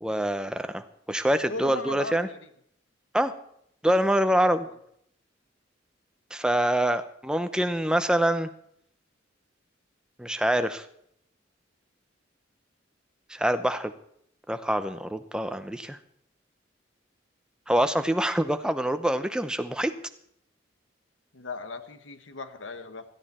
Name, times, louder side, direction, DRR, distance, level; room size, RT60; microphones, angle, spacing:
voice 1, 0.0-2.3 3.1-3.3 3.8-4.7 6.3-8.5 10.2-10.8 13.3-13.9 14.5-16.0 17.7-19.9, right 1 dB, 5° right, 9 dB, 0.7 m, -25 dB
voice 2, 1.5-2.4 21.3-23.0, left 3 dB, 85° left, 10 dB, 1.2 m, -37 dB
16.5 x 13.5 x 4.3 m, 0.70 s
head